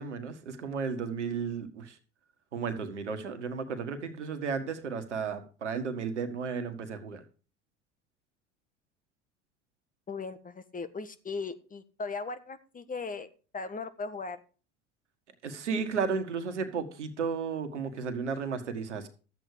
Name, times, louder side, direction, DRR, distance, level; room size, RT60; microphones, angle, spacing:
voice 1, 0.0-2.0 2.5-7.2 15.4-19.1, right 5 dB, 85° right, 8 dB, 1.7 m, -33 dB
voice 2, 10.1-13.3 13.5-14.4, left 4 dB, 25° left, 11 dB, 1.5 m, -38 dB
13.0 x 8.4 x 4.8 m, 0.36 s
hypercardioid pair, 70°, 34 cm